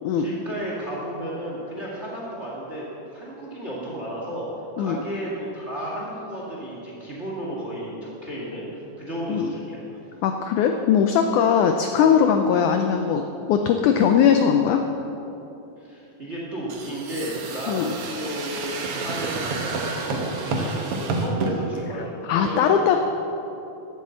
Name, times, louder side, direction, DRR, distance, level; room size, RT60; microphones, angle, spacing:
voice 1, 0.2-4.5 4.8-8.7 9.0-9.8 15.8-22.7, right 1 dB, 30° right, -4 dB, 1.4 m, -33 dB
voice 2, 10.2-13.2 13.5-14.8 17.7-17.9 22.2-23.0, left 7 dB, 80° left, 5 dB, 1.8 m, -20 dB
sound 1, 16.7-21.5, right 3 dB, 65° right, 1.6 m, -29 dB
11.5 x 8.2 x 7.7 m, 2.9 s
omnidirectional pair, 4.1 m